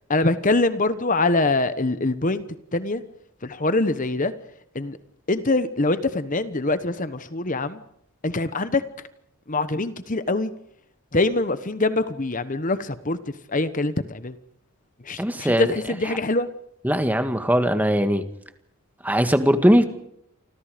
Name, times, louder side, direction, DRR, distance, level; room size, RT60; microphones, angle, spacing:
voice 1, 0.1-2.4 2.7-3.0 3.4-4.3 4.7-5.0 5.3-7.8 8.2-8.8 9.5-10.5 11.1-13.2 13.5-14.3 15.0-16.5, left 2 dB, 35° left, 12 dB, 1.1 m, -24 dB
voice 2, 15.2-15.7 16.8-18.2 19.0-19.8, equal, 10° right, 8 dB, 1.8 m, -20 dB
29.5 x 25.5 x 5.2 m, 0.72 s
head